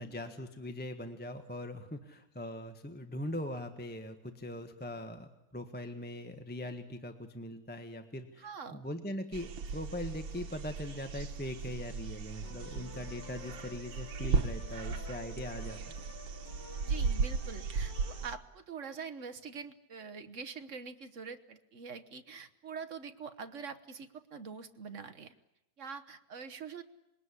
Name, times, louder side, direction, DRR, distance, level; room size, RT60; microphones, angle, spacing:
voice 1, 0.0-15.9, left 1 dB, 5° left, 6 dB, 1.1 m, -41 dB
voice 2, 8.4-8.8 16.8-25.3 25.8-26.8, right 5 dB, 45° right, 9 dB, 1.3 m, -44 dB
sound 1, 9.3-18.4, right 5 dB, 80° right, 2.1 m, -36 dB
sound 2, 12.4-18.3, left 5 dB, 65° left, 2.4 m, -52 dB
26.5 x 21.0 x 9.9 m, 0.91 s
omnidirectional pair, 2.1 m